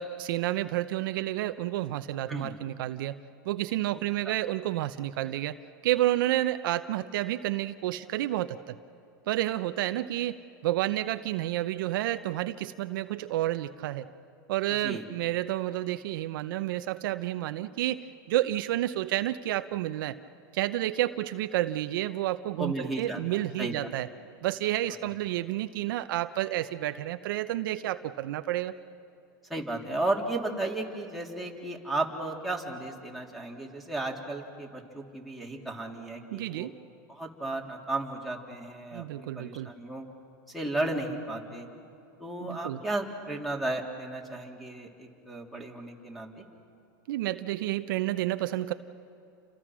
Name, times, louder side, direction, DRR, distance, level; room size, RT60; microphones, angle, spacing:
voice 1, 0.0-3.2 3.4-5.6 5.8-8.7 9.3-14.0 14.5-20.2 20.5-24.1 24.4-28.7 36.3-36.7 38.9-39.7 42.4-42.8 47.1-48.7, right 14 dB, 65° right, 10 dB, 0.8 m, -30 dB
voice 2, 22.6-23.9 29.5-36.7 37.1-40.1 40.5-41.7 42.2-46.5, right 2 dB, ahead, -3 dB, 3.4 m, -34 dB
29.5 x 26.0 x 6.3 m, 2.6 s
hypercardioid pair, 120°, 12 cm